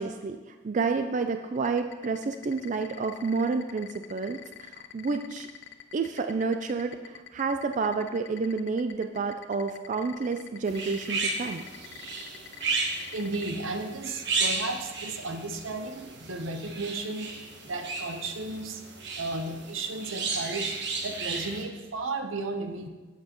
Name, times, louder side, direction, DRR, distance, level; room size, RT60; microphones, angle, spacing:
voice 1, 0.0-5.5 5.9-11.6, right 4 dB, 40° right, 7 dB, 0.3 m, -30 dB
sound 1, 1.6-13.5, left 9 dB, 65° left, 0.5 m, -45 dB
sound 2, 10.6-21.6, right 3 dB, 60° right, 1.2 m, -34 dB
voice 2, 13.1-17.3 17.7-18.8 19.2-22.9, right 2 dB, 85° right, 5 dB, 0.9 m, -34 dB
11.5 x 7.5 x 3.0 m, 1.3 s
head